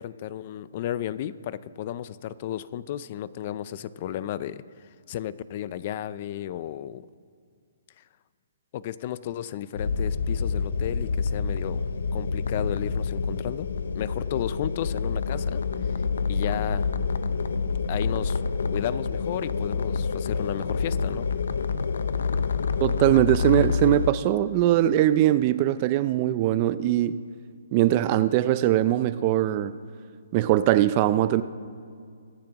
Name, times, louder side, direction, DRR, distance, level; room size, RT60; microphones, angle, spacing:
voice 1, 0.0-7.1 8.0-8.1 8.7-11.8 12.1-13.7 13.9-15.6 16.3-16.9 17.9-18.4 18.7-21.3, left 11 dB, 35° left, 0.4 m, -33 dB
sound 1, 9.8-24.1, left 5 dB, 80° left, 0.6 m, -27 dB
voice 2, 22.8-27.2 27.7-29.7 30.3-31.4, right 13 dB, 30° right, 0.4 m, -21 dB
24.0 x 10.5 x 3.0 m
hypercardioid pair, 160°, 0 cm